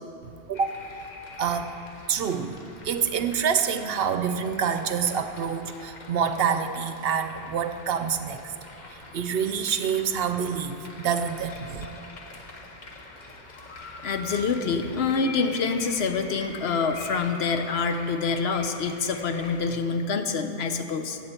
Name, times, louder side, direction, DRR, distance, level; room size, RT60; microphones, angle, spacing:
sound 1, 0.5-19.7, left 2 dB, 45° left, 1.0 m, -44 dB
voice 1, 1.4-1.7 2.1-2.6 2.8-8.4 8.9-11.9, right 7 dB, 65° right, 9 dB, 0.8 m, -27 dB
voice 2, 14.0-21.2, left 5 dB, 70° left, 7 dB, 1.0 m, -26 dB
14.5 x 8.7 x 4.3 m, 3.0 s
omnidirectional pair, 1.1 m